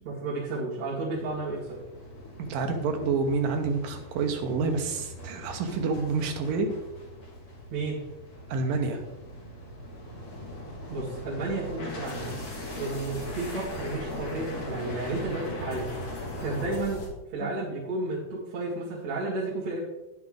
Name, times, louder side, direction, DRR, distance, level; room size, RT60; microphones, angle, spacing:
voice 1, 0.0-1.8 7.7-8.0 10.9-12.3 12.8-15.9 16.4-17.0 17.3-19.8, right 2 dB, 50° right, -6 dB, 2.7 m, -32 dB
sound 1, 1.1-17.1, left 1 dB, 45° left, 2.7 m, -39 dB
voice 2, 2.5-6.7 8.5-9.0 17.4-17.5, right 4 dB, 70° right, 4 dB, 2.5 m, -28 dB
10.5 x 7.9 x 3.7 m, 0.99 s
omnidirectional pair, 4.7 m